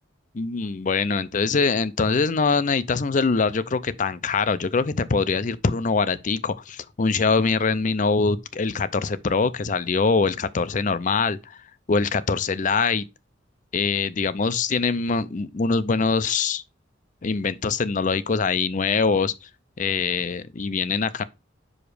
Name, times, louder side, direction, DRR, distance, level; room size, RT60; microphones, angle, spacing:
voice 1, 0.3-11.6 11.9-13.0 13.7-16.6 17.2-19.5 19.8-21.2, left 4 dB, 40° left, 0.5 m, -23 dB
5.0 x 5.0 x 4.8 m
head